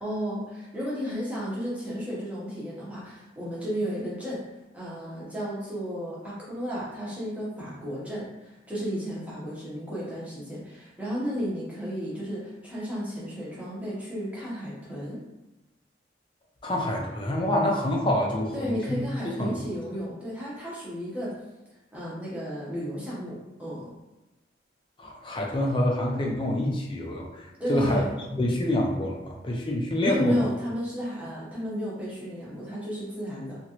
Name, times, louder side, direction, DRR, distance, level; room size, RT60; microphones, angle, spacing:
voice 1, 0.0-4.4 4.7-15.2 18.5-21.4 21.9-23.9 27.6-28.1 30.0-33.6, equal, 5° right, -8 dB, 0.8 m, -33 dB
voice 2, 16.6-19.0 19.4-19.5 25.0-30.4, left 1 dB, 25° left, -1 dB, 0.4 m, -27 dB
2.9 x 2.5 x 2.8 m, 1.0 s
head